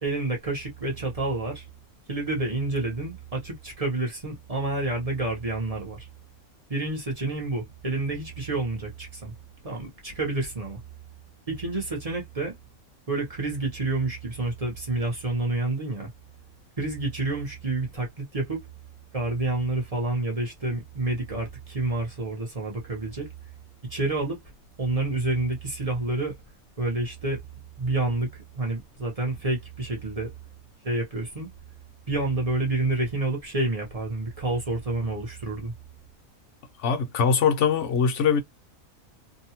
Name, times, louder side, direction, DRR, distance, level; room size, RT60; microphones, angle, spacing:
voice 1, 0.0-1.6 2.1-6.1 6.7-9.3 9.6-10.8 11.5-12.5 13.1-16.1 16.8-18.6 19.1-23.3 23.9-24.4 24.8-26.4 26.8-27.4 27.8-30.3 30.8-31.5 32.1-35.7, right 2 dB, 30° right, 0.8 m, -29 dB
voice 2, 36.8-38.4, left 6 dB, 60° left, 1.0 m, -22 dB
2.7 x 2.2 x 2.8 m
omnidirectional pair, 1.5 m